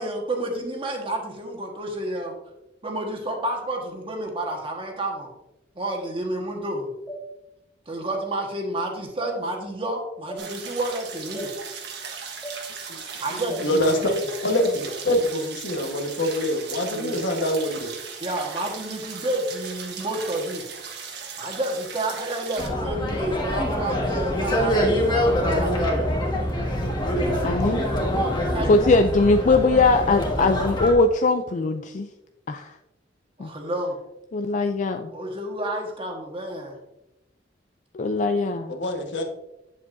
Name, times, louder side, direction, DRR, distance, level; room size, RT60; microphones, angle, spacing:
voice 1, 0.0-2.3 2.8-5.3 5.7-6.9 7.9-11.5 13.2-14.2 16.9-17.2 18.2-20.6 21.4-25.7 28.5-28.9 33.4-34.0 35.1-36.8, right 1 dB, 30° right, 1 dB, 1.4 m, -30 dB
sound 1, 7.1-7.2 8.1-8.3 9.2-9.4 10.3-10.4 11.4-11.5 12.4-12.6 13.5-13.7 14.6-14.7, right 1 dB, 5° right, 1.1 m, -36 dB
sound 2, 10.4-22.7, right 6 dB, 65° right, 1.3 m, -37 dB
voice 2, 13.3-14.0 14.4-17.9 38.7-39.2, left 1 dB, 70° left, 3 dB, 1.3 m, -25 dB
sound 3, 22.6-30.9, equal, 25° left, 1.5 m, -24 dB
voice 3, 27.4-27.8 28.7-32.1 32.5-32.7 33.4-33.5 34.3-35.1 37.9-38.7, left 3 dB, 45° left, 7 dB, 0.4 m, -20 dB
8.4 x 7.4 x 2.6 m, 0.92 s
head